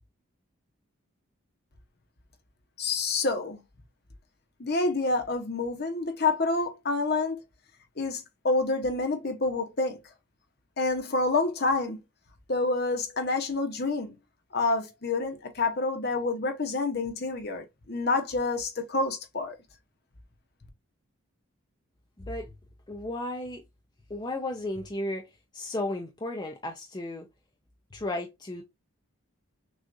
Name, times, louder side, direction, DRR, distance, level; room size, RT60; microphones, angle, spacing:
voice 1, 2.8-3.6 4.6-7.4 8.0-10.0 10.8-12.0 12.5-14.1 14.5-19.6, left 3 dB, 45° left, 0.9 m, -28 dB
voice 2, 22.2-22.5 22.9-23.6 24.1-25.2 25.5-27.3 27.9-28.6, left 1 dB, 20° left, 0.5 m, -34 dB
6.3 x 2.4 x 2.5 m
head